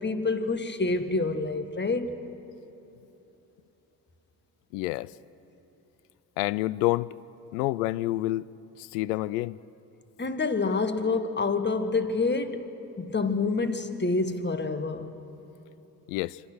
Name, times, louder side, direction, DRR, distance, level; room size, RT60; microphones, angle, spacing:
voice 1, 0.0-2.2 10.2-15.2, left 3 dB, 25° left, 1.8 m, -27 dB
voice 2, 4.7-5.1 6.4-7.2 7.5-8.4 8.8-9.6 16.1-16.4, left 17 dB, 85° left, 0.6 m, -28 dB
27.0 x 24.5 x 6.3 m
hypercardioid pair, 55°, 45 cm